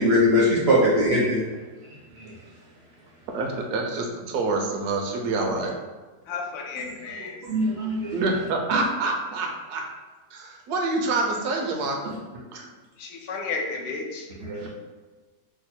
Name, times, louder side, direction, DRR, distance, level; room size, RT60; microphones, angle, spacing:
voice 1, 0.0-1.4 2.2-2.3 7.4-8.1 14.4-14.7, left 1 dB, 60° right, -5 dB, 0.7 m, -21 dB
voice 2, 3.3-5.7 8.1-9.8 10.3-12.2 12.5-12.7, right 3 dB, 75° right, 1 dB, 1.1 m, -27 dB
voice 3, 6.3-7.4 13.0-14.3, left 4 dB, 80° left, 1 dB, 1.2 m, -32 dB
3.2 x 2.1 x 4.2 m, 1.3 s
omnidirectional pair, 1.8 m